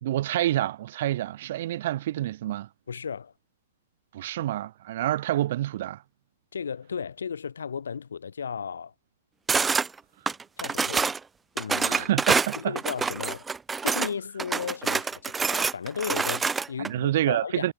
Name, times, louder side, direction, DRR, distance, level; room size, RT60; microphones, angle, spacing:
voice 1, 0.0-2.7 4.1-6.0 11.9-12.7 16.8-17.7, right 14 dB, 60° right, 2.7 m, -28 dB
voice 2, 2.9-3.3 6.5-8.9 10.6-11.1 11.6-12.1 12.6-13.4 13.8-17.7, left 6 dB, 85° left, 1.7 m, -35 dB
sound 1, 9.5-9.9 10.3-11.2 11.6-14.1 14.4-16.9, right 5 dB, 10° right, 1.8 m, -26 dB
hypercardioid pair, 125°, 0 cm